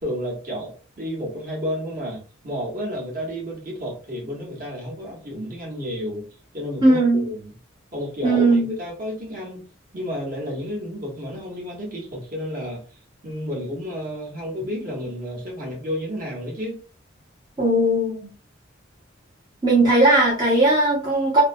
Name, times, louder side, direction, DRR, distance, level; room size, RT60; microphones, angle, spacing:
voice 1, 0.0-6.3 6.5-7.5 7.9-9.7 9.9-12.8 13.2-16.8, equal, 45° right, -3 dB, 1.0 m, -31 dB
voice 2, 6.8-7.3 8.2-8.7 17.6-18.3 19.6-21.4, right 2 dB, 20° right, -6 dB, 0.6 m, -18 dB
2.6 x 2.1 x 2.5 m, 0.38 s
head